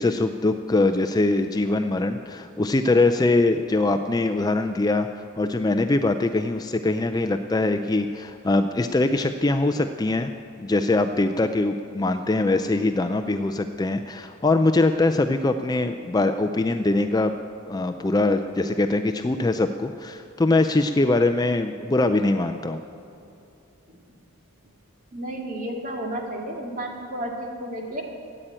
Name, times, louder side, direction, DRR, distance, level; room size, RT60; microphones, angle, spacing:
voice 1, 0.0-10.3 10.6-17.3 17.6-22.8, left 2 dB, 15° left, 8 dB, 0.3 m, -22 dB
voice 2, 25.1-28.0, right 1 dB, 40° right, 0 dB, 2.1 m, -32 dB
14.0 x 8.9 x 8.9 m, 2.6 s
head